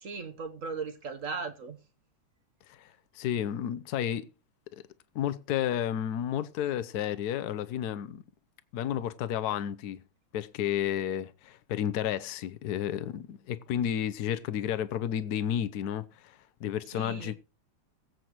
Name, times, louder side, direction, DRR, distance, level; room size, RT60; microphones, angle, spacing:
voice 1, 0.0-1.8 16.9-17.3, right 4 dB, 50° right, 1.1 m, -37 dB
voice 2, 2.7-4.3 4.7-4.8 5.1-8.2 8.7-10.0 10.3-17.3, left 10 dB, 65° left, 1.1 m, -32 dB
21.5 x 8.0 x 3.0 m
omnidirectional pair, 2.3 m